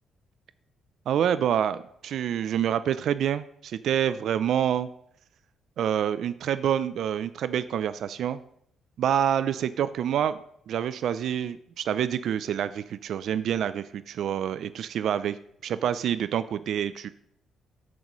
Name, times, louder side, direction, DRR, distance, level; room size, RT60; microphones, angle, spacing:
voice 1, 1.1-4.9 5.8-8.4 9.0-10.4 10.7-15.4 15.6-17.1, right 9 dB, 70° right, 14 dB, 0.3 m, -27 dB
13.5 x 5.3 x 3.0 m, 0.70 s
cardioid pair, 90°, 0 cm